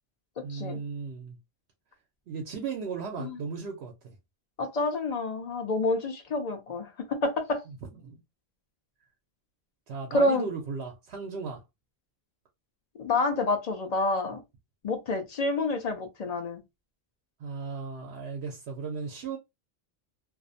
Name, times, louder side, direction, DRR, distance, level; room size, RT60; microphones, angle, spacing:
voice 1, 0.4-1.4 2.3-4.2 7.7-7.8 8.0-8.2 9.9-11.6 17.4-19.4, right 5 dB, 80° right, 0.8 m, -36 dB
voice 2, 4.6-7.6 10.1-10.5 13.0-14.4 14.8-16.6, left 2 dB, 50° left, 0.5 m, -28 dB
2.5 x 2.0 x 2.5 m
omnidirectional pair, 1.1 m